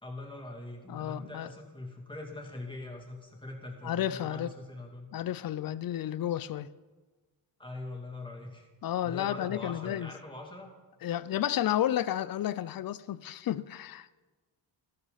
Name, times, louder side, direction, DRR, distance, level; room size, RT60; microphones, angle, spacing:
voice 1, 0.0-5.1 7.6-8.7 9.0-10.7, left 2 dB, 10° left, 2.7 m, -42 dB
voice 2, 0.9-1.5 3.8-4.5 5.1-6.7 8.8-10.1 11.0-14.1, left 11 dB, 50° left, 0.6 m, -32 dB
13.5 x 12.5 x 4.1 m
cardioid pair, 85°, 44 cm